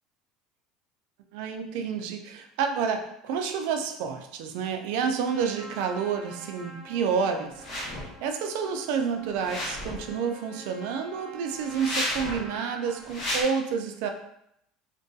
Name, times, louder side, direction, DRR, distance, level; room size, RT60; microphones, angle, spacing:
voice 1, 1.3-14.1, right 6 dB, 75° right, 5 dB, 0.3 m, -29 dB
Trumpet, 5.2-13.1, right 1 dB, 5° right, 0.5 m, -47 dB
sound 1, 7.6-8.1 9.3-10.1 11.6-12.5 13.0-13.4, left 1 dB, 35° left, 0.8 m, -32 dB
2.6 x 2.2 x 2.3 m, 0.77 s
cardioid pair, 155°, 0 cm